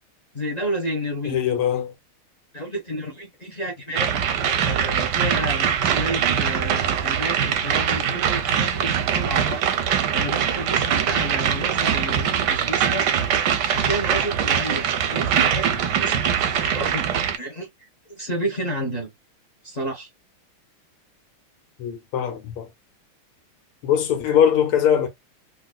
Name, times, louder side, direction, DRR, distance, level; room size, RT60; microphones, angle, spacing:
voice 1, 0.3-1.4 2.5-9.7 10.1-13.1 13.7-17.0 17.3-19.1 19.6-20.1, equal, 45° left, 0.5 m, -31 dB
voice 2, 1.2-1.9 21.8-22.7 23.8-25.1, left 9 dB, 85° left, 1.8 m, -21 dB
sound 1, 3.9-17.4, right 8 dB, 70° right, 1.0 m, -22 dB
3.8 x 2.6 x 2.2 m
omnidirectional pair, 2.4 m